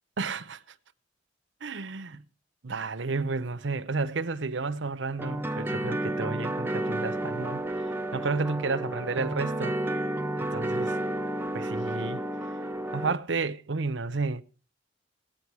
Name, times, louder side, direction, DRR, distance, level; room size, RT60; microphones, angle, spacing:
voice 1, 0.2-0.6 1.6-2.2 2.6-7.6 8.1-9.8 10.4-10.9 11.5-12.2 12.9-14.4, right 4 dB, 80° right, 0.8 m, -31 dB
sound 1, 5.2-13.1, right 1 dB, 10° right, 0.7 m, -31 dB
17.0 x 9.0 x 4.7 m
head